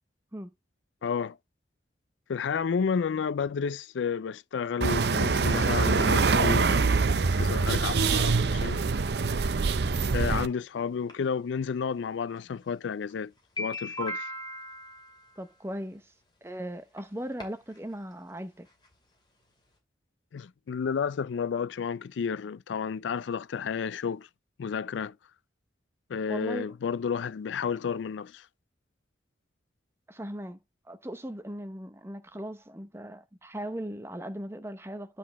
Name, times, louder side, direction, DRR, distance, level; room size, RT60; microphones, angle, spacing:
voice 1, 1.0-1.4 2.3-8.8 10.1-13.3 13.6-14.3 20.3-24.3 24.6-25.1 26.1-28.4, left 6 dB, 80° left, 0.4 m, -31 dB
sound 1, 4.8-10.5, right 4 dB, 60° right, 0.6 m, -24 dB
sound 2, 11.1-11.2 12.4-12.5 13.0-13.1 13.4-15.4 16.5-16.6 17.0-17.1 17.4-17.8 18.1-18.2 18.4-18.5 18.8-18.9, left 1 dB, 25° left, 2.5 m, -37 dB
voice 2, 15.4-16.1 16.4-18.7 26.3-26.7 30.1-30.6 30.9-35.2, right 1 dB, 15° right, 0.7 m, -38 dB
9.3 x 4.2 x 4.2 m
head